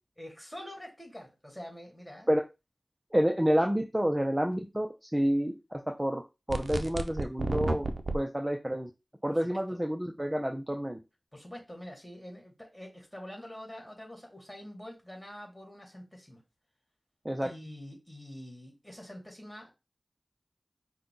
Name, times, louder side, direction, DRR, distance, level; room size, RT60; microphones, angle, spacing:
voice 1, 0.2-2.3 9.3-9.8 11.3-16.4 17.4-19.7, left 1 dB, 10° left, 2.3 m, -46 dB
voice 2, 3.1-4.9 5.1-5.5 5.9-6.2 6.5-7.8 8.1-8.9 9.2-11.0 17.2-17.5, equal, 15° right, 0.6 m, -28 dB
sound 1, 6.5-8.2, right 2 dB, 70° right, 0.5 m, -31 dB
5.6 x 2.3 x 3.9 m
wide cardioid pair, 45°, 0 cm